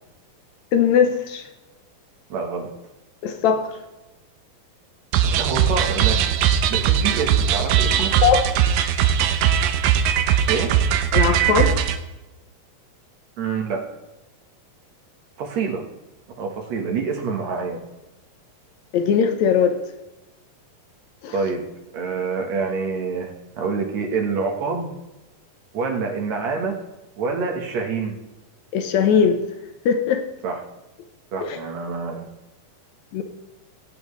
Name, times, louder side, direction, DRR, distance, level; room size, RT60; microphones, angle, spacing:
voice 1, 0.7-1.5 3.2-3.7 8.2-8.5 11.1-11.7 18.9-19.8 21.2-21.3 28.7-29.4 29.9-30.2 31.4-31.6 33.1-33.2, left 7 dB, 70° left, 7 dB, 1.8 m, -19 dB
voice 2, 2.3-2.7 5.2-6.3 6.7-8.1 10.5-10.7 13.4-13.8 15.4-15.8 16.4-17.8 21.3-21.7 21.9-24.9 25.7-26.8 27.2-28.2 30.4-30.6 31.3-32.2, right 4 dB, 60° right, 2 dB, 2.2 m, -26 dB
sound 1, 5.1-12.0, right 9 dB, 80° right, 2.4 m, -19 dB
18.0 x 8.8 x 3.2 m, 1.0 s
omnidirectional pair, 4.1 m